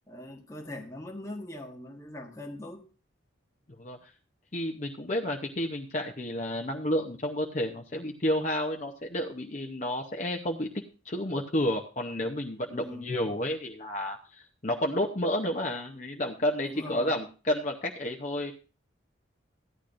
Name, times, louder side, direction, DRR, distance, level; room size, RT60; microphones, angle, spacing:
voice 1, 0.1-2.9 12.7-13.1 16.7-17.1, left 1 dB, 15° left, 1.2 m, -41 dB
voice 2, 4.5-10.7 11.0-18.5, left 1 dB, 40° left, 0.8 m, -31 dB
15.0 x 10.0 x 2.6 m
head